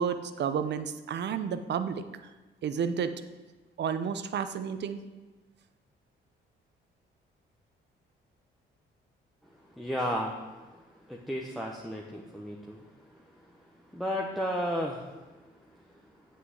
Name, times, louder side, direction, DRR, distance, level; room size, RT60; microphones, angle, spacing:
voice 1, 0.0-2.0 2.6-3.1 3.8-5.0, right 7 dB, 60° right, 10 dB, 0.8 m, -31 dB
voice 2, 9.8-10.4 11.1-12.8 13.9-15.1, equal, ahead, -1 dB, 1.1 m, -33 dB
7.9 x 6.3 x 7.9 m, 1.2 s
cardioid pair, 90°, 20 cm